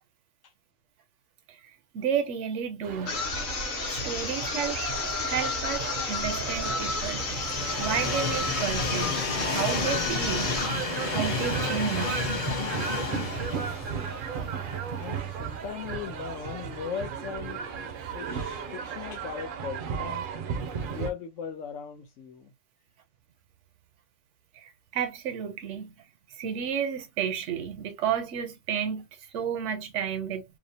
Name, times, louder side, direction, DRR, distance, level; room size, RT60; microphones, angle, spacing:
voice 1, 1.9-3.3 3.5-4.8 5.1-7.2 7.8-9.1 9.5-10.6 11.1-12.3 24.5-25.9 26.4-29.1 29.3-30.4, right 8 dB, 80° right, 0.9 m, -31 dB
sound 1, 2.8-21.1, right 6 dB, 60° right, 0.5 m, -35 dB
sound 2, 3.0-10.8, left 4 dB, 60° left, 1.0 m, -32 dB
Train, 5.6-15.7 16.2-16.3 17.4-17.5, left 4 dB, 40° left, 0.6 m, -32 dB
voice 2, 15.0-20.3 20.8-22.5, left 7 dB, 90° left, 1.1 m, -39 dB
2.6 x 2.0 x 2.7 m
omnidirectional pair, 1.3 m